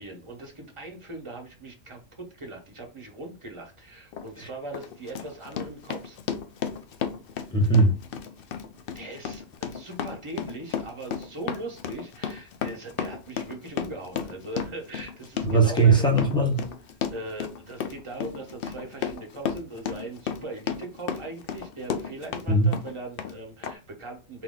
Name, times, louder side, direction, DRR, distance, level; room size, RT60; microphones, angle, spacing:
voice 1, 0.0-6.2 8.9-16.1 17.1-24.4, right 2 dB, 25° right, 1.1 m, -40 dB
Run, 4.1-4.3 4.7-22.5 22.7-23.3 23.6-23.7, left 7 dB, 60° left, 0.6 m, -33 dB
voice 2, 7.5-7.9 15.4-16.6 22.5-22.8, right 3 dB, 5° left, 0.9 m, -20 dB
3.9 x 3.0 x 3.7 m
omnidirectional pair, 1.3 m